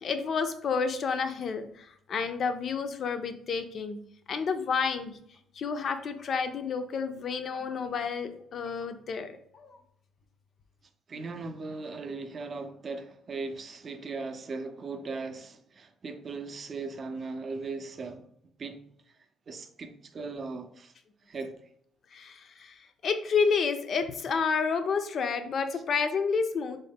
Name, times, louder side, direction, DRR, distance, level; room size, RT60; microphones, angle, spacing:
voice 1, 0.0-4.0 4.3-5.1 5.6-9.7 22.1-22.7 23.0-26.8, left 5 dB, 55° left, 0.4 m, -30 dB
voice 2, 11.1-18.2 18.6-18.8 19.5-20.9 21.3-21.6, right 3 dB, 45° right, 0.4 m, -38 dB
3.7 x 2.1 x 3.5 m
cardioid pair, 85°, 0 cm